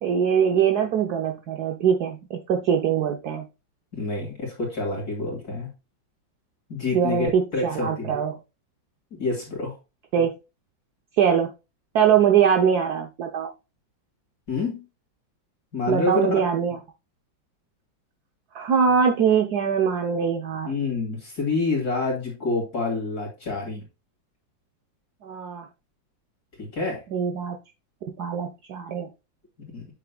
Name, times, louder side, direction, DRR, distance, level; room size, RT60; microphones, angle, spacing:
voice 1, 0.0-3.4 6.9-8.4 10.1-10.3 11.2-11.5 11.9-13.5 15.9-16.8 18.5-20.7 25.2-25.6 27.1-27.6 28.2-29.1, right 7 dB, 65° right, 3 dB, 1.2 m, -22 dB
voice 2, 3.9-5.7 6.7-8.1 9.1-9.8 14.5-14.9 15.7-16.3 20.6-23.8 26.6-27.0 29.7-29.9, left 3 dB, 50° left, -2 dB, 2.8 m, -28 dB
8.3 x 6.9 x 2.2 m, 0.27 s
omnidirectional pair, 2.1 m